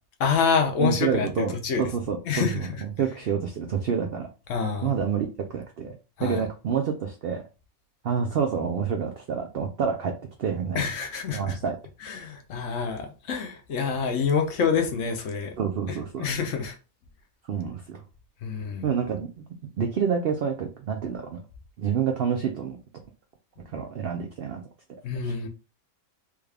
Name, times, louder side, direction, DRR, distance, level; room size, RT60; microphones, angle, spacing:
voice 1, 0.2-1.9 2.3-2.8 4.5-4.9 6.2-6.4 10.7-11.6 12.0-15.6 15.9-16.8 18.4-18.9 25.0-25.5, left 6 dB, 65° left, 0.9 m, -27 dB
voice 2, 0.8-2.7 3.0-4.3 4.8-7.4 8.0-10.1 10.4-10.8 11.3-11.8 15.6-16.2 17.5-18.0 18.8-19.4 19.8-21.4 21.8-22.8 23.7-24.6 25.2-25.3, right 7 dB, 75° right, 0.5 m, -28 dB
3.5 x 2.3 x 3.3 m
omnidirectional pair, 1.5 m